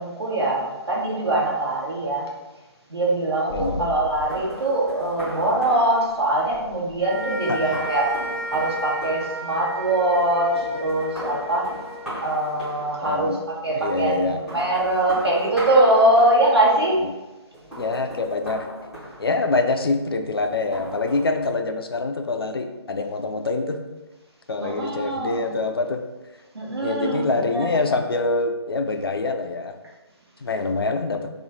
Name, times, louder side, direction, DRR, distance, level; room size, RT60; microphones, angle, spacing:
voice 1, 0.0-2.3 2.9-8.1 8.5-11.7 12.2-17.0 24.6-25.5 26.5-27.6, right 1 dB, 65° right, -5 dB, 1.2 m, -22 dB
voice 2, 3.5-3.9 7.5-7.6 13.0-13.4 13.7-14.4 17.0-17.1 17.8-18.7 19.2-23.8 24.5-26.0 26.8-29.7 30.4-31.3, left 3 dB, 55° left, 6 dB, 0.4 m, -25 dB
sound 1, 3.5-10.2 10.5-13.3 14.1-16.8 17.5-19.8 20.4-21.5, equal, ahead, 0.7 m, -38 dB
sound 2, 7.0-13.4, right 1 dB, 25° right, 1.1 m, -34 dB
3.1 x 2.3 x 4.1 m, 1.1 s
figure-of-eight pair, 145°, 15 cm